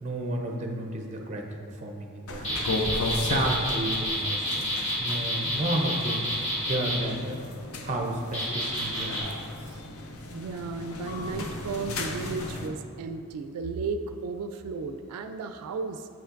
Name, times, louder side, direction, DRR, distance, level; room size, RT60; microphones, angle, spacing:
voice 1, 0.0-2.6 3.2-4.7 5.0-7.4 7.8-9.4 9.7-9.8, right 1 dB, 30° right, 2 dB, 0.5 m, -32 dB
sound 1, 2.3-12.7, left 2 dB, 75° left, 0.6 m, -35 dB
sound 2, 2.4-7.0 8.3-9.2, equal, 30° left, 1.4 m, -29 dB
voice 2, 10.3-16.1, right 4 dB, 85° right, 7 dB, 0.3 m, -34 dB
7.4 x 5.6 x 2.5 m, 2.4 s
head